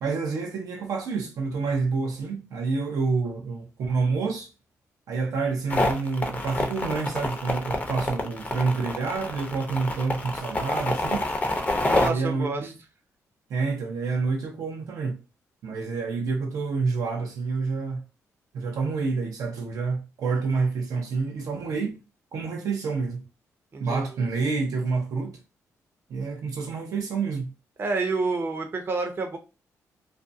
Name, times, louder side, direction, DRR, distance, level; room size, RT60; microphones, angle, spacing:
voice 1, 0.0-4.5 5.1-11.2 12.0-12.7 13.5-15.2 15.6-18.0 18.5-22.0 22.3-23.2 23.8-25.4 26.1-27.5, right 4 dB, 75° right, 0.6 m, -28 dB
sound 1, 5.7-12.1, left 2 dB, 25° left, 0.6 m, -27 dB
voice 2, 11.8-12.7 23.7-24.2 27.8-29.4, right 3 dB, 40° right, 0.7 m, -29 dB
2.5 x 2.2 x 2.6 m
cardioid pair, 80°, 6 cm